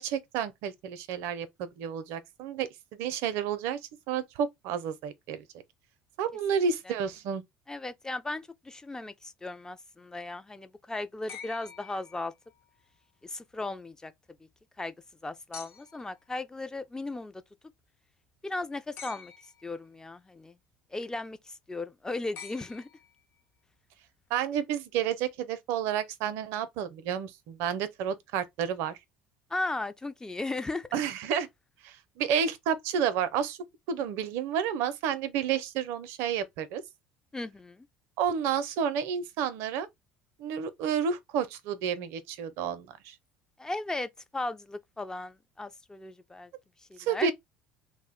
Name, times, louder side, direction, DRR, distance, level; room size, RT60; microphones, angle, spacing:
voice 1, 0.0-3.8 4.1-5.4 6.2-7.4 24.3-29.0 30.9-31.5 31.8-33.6 33.9-36.8 38.2-39.9 40.4-43.1 47.0-47.3, right 7 dB, 70° right, 0.4 m, -30 dB
voice 2, 7.7-12.3 13.2-14.1 14.8-14.9 15.2-17.4 18.4-19.3 19.6-20.6 20.9-22.9 29.5-30.9 37.3-37.9 43.6-46.5 46.9-47.3, left 2 dB, 15° left, 0.3 m, -36 dB
sound 1, 11.3-12.7 15.5-16.1 19.0-19.8 22.3-23.4 25.0-25.1, left 7 dB, 60° left, 0.9 m, -47 dB
2.3 x 2.1 x 3.5 m
hypercardioid pair, 70°, 4 cm